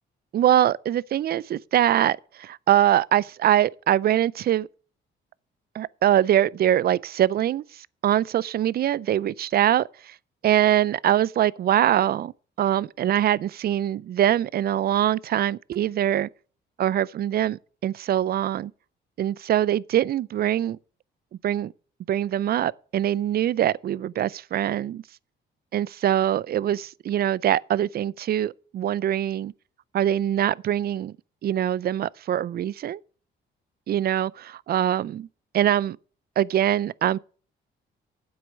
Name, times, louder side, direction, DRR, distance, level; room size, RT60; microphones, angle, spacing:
voice 1, 0.3-4.7 5.7-10.2 10.4-12.3 12.6-16.3 16.8-18.7 19.2-20.8 21.4-21.7 22.1-25.0 25.7-29.5 29.9-31.1 31.4-33.0 33.9-35.3 35.5-36.0 36.4-37.2, right 11 dB, 50° right, 0.4 m, -23 dB
9.3 x 7.9 x 6.3 m
cardioid pair, 90°, 20 cm